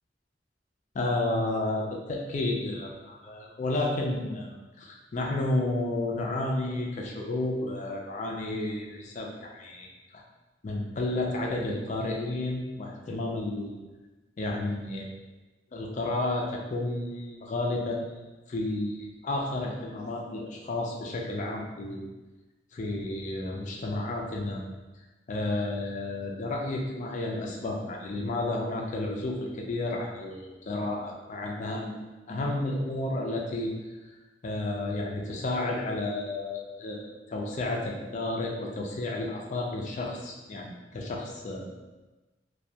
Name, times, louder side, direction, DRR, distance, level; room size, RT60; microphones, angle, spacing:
voice 1, 0.9-9.9 10.1-10.2 10.6-13.8 14.4-15.1 15.7-22.0 22.7-24.6 25.3-31.9 32.3-33.7 34.4-41.7, left 2 dB, 40° left, 0 dB, 0.4 m, -31 dB
2.2 x 2.1 x 2.7 m, 1.1 s
head